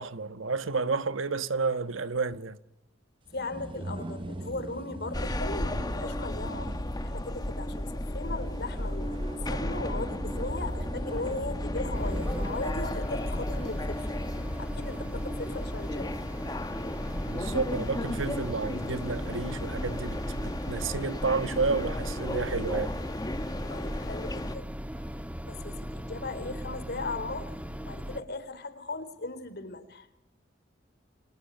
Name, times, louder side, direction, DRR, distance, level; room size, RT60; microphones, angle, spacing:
voice 1, 0.0-2.6 17.3-23.0, right 4 dB, 85° right, 1.3 m, -31 dB
voice 2, 3.3-14.2 14.6-16.2 23.7-24.7 25.0-27.5 27.8-30.1, left 2 dB, 55° left, 3.8 m, -38 dB
sound 1, 3.3-15.3, right 1 dB, 25° right, 0.9 m, -42 dB
sound 2, 5.1-24.6, left 1 dB, 20° left, 1.0 m, -34 dB
sound 3, 11.9-28.2, equal, 5° right, 1.3 m, -38 dB
29.0 x 24.5 x 6.7 m
head